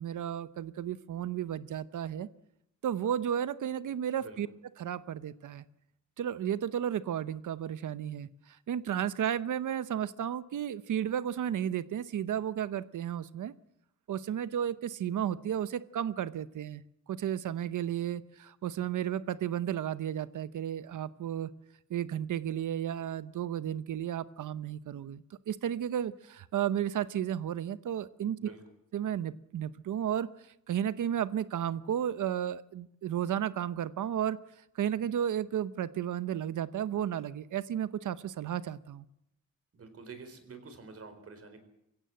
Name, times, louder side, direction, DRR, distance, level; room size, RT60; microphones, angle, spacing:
voice 1, 0.0-2.3 2.8-4.5 4.8-5.6 6.2-13.5 14.1-16.8 17.1-21.5 21.9-28.4 28.9-34.4 34.7-39.0, right 10 dB, 80° right, 15 dB, 0.8 m, -33 dB
voice 2, 39.7-41.6, right 4 dB, 50° right, 8 dB, 4.4 m, -48 dB
23.5 x 16.5 x 7.8 m, 0.81 s
wide cardioid pair, 140°, 30 cm